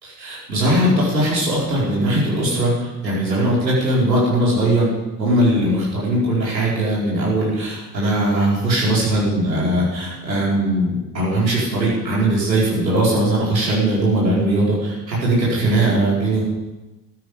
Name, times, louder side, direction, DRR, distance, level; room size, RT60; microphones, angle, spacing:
voice 1, 0.0-4.9 5.2-16.4, right 1 dB, 85° right, -6 dB, 4.8 m, -19 dB
15.0 x 12.5 x 5.1 m, 1.1 s
figure-of-eight pair, 60°, 50 cm